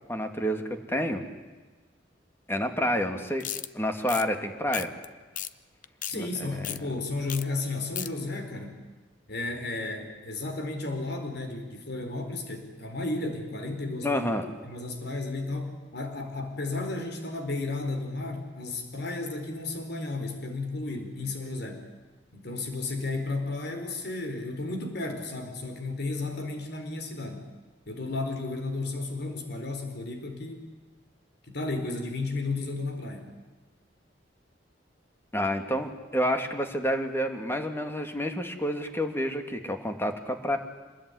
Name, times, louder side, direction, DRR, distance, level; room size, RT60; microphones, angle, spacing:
voice 1, 0.1-0.6 0.9-1.2 2.5-3.5 3.7-4.9 6.1-6.8 14.0-14.5 35.3-40.6, equal, 15° left, 6 dB, 2.5 m, -29 dB
sound 1, 3.4-3.7 4.1-4.3 4.7-5.1 5.4-5.5 5.8-6.2 6.6-6.8 7.3-7.4 7.7-8.1, left 11 dB, 45° left, 0.9 m, -34 dB
voice 2, 6.0-8.8 9.3-14.2 14.6-21.8 22.3-27.5 27.9-30.7 31.5-33.3, left 2 dB, 65° left, 5 dB, 4.4 m, -33 dB
27.0 x 21.0 x 9.9 m, 1.3 s
head